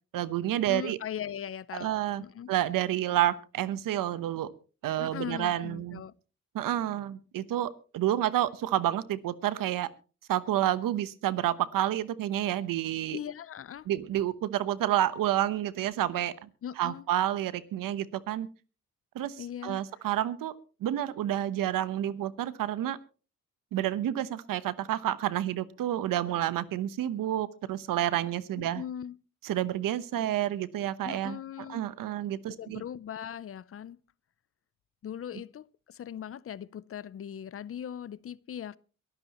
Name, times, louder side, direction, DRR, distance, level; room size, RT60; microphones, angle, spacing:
voice 1, 0.1-1.0 1.8-4.5 4.8-6.0 6.5-9.9 10.3-13.2 13.9-16.5 16.8-18.5 19.1-20.5 20.8-23.0 23.7-28.8 29.4-31.4 31.7-32.8, right 12 dB, 80° right, 1.1 m, -29 dB
voice 2, 0.7-1.9 2.2-2.5 5.0-6.1 13.1-13.9 16.6-17.0 19.4-19.8 28.6-29.2 31.0-31.9 32.5-34.0 35.0-38.8, left 9 dB, 45° left, 0.6 m, -39 dB
23.0 x 13.0 x 3.0 m
cardioid pair, 95°, 32 cm